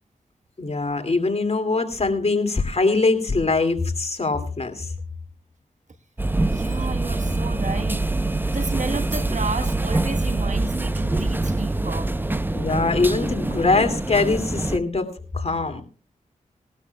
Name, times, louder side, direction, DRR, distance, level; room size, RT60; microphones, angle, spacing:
voice 1, 0.6-4.9 12.5-15.8, left 3 dB, 45° left, 6 dB, 2.6 m, -22 dB
sound 1, 6.2-14.8, right 2 dB, 15° right, 0.7 m, -24 dB
voice 2, 6.5-8.0 8.5-12.1, right 4 dB, 55° right, 10 dB, 1.3 m, -32 dB
20.5 x 12.5 x 2.3 m, 0.37 s
cardioid pair, 45°, 15 cm